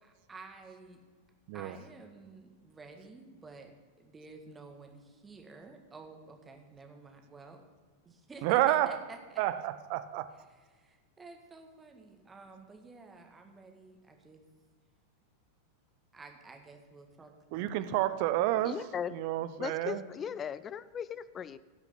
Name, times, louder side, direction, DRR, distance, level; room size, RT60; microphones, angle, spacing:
voice 1, 0.0-1.0 1.5-3.7 4.0-7.6 8.1-9.4 10.7-14.4 16.1-17.3, right 3 dB, 15° right, 3 dB, 1.7 m, -51 dB
voice 2, 8.4-9.0 9.4-10.3 17.5-18.8 19.1-20.0, right 14 dB, 45° right, 12 dB, 0.6 m, -29 dB
voice 3, 18.7-19.1 19.6-21.6, left 8 dB, 25° left, 18 dB, 0.4 m, -38 dB
17.0 x 5.9 x 5.8 m, 1.5 s
figure-of-eight pair, 90°, 0 cm